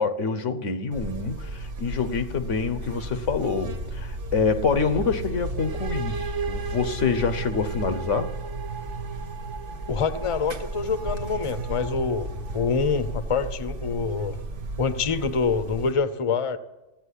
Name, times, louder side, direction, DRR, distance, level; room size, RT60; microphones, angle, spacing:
voice 1, 0.0-8.3, left 5 dB, 85° left, 1.4 m, -26 dB
Buzz, 0.9-15.9, right 1 dB, 50° right, 1.3 m, -34 dB
sound 1, 5.6-13.2, right 7 dB, 80° right, 1.1 m, -38 dB
voice 2, 9.9-14.4 14.8-16.6, left 5 dB, 30° left, 0.8 m, -26 dB
15.5 x 8.9 x 10.0 m
omnidirectional pair, 1.2 m